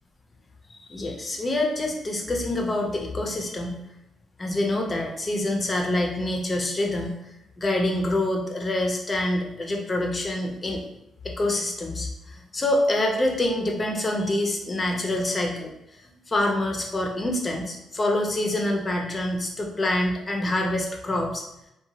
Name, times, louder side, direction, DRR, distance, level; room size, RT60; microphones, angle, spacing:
voice 1, 0.7-3.8 4.4-7.2 7.6-10.8 11.2-15.7 16.3-21.4, left 1 dB, 30° left, 1 dB, 0.6 m, -26 dB
2.7 x 2.3 x 2.7 m, 0.87 s
cardioid pair, 90°, 0 cm